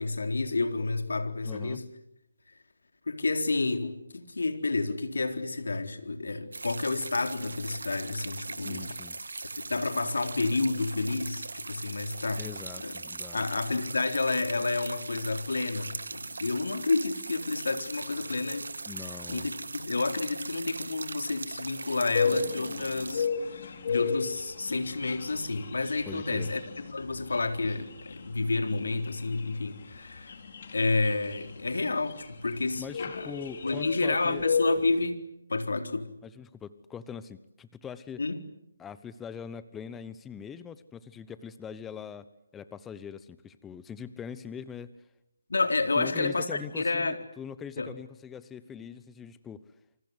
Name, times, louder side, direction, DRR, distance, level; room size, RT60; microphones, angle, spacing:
voice 1, 0.0-1.8 3.1-8.9 9.6-12.4 12.8-12.9 13.3-18.7 19.3-30.4 30.7-33.3 33.6-36.1 38.2-38.4 45.5-47.2 47.8-47.9, left 3 dB, 75° left, 4.0 m, -30 dB
voice 2, 1.4-1.8 8.6-9.2 12.4-13.4 18.9-19.5 26.1-26.5 32.8-34.5 36.2-38.2 38.8-42.3 42.5-45.0 46.0-49.7, left 7 dB, 10° left, 1.0 m, -42 dB
sound 1, 6.5-23.3, right 3 dB, 75° right, 1.9 m, -40 dB
sound 2, 22.1-35.0, left 5 dB, 50° left, 4.6 m, -34 dB
28.0 x 25.5 x 8.1 m
figure-of-eight pair, 150°, 0 cm